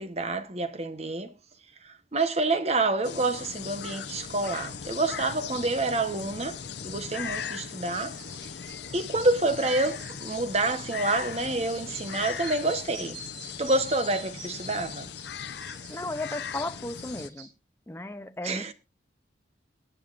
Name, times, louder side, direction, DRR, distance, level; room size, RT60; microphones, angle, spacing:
voice 1, 0.0-1.3 1.8-8.2 8.9-13.2 13.6-15.1 18.4-18.7, right 2 dB, 35° right, 1.0 m, -28 dB
sound 1, 3.0-17.3, left 7 dB, 60° left, 0.7 m, -39 dB
sound 2, 7.9-17.5, right 2 dB, 85° right, 6.8 m, -46 dB
voice 2, 15.9-17.5 17.9-18.7, left 2 dB, 15° left, 0.5 m, -35 dB
21.5 x 8.5 x 2.5 m
head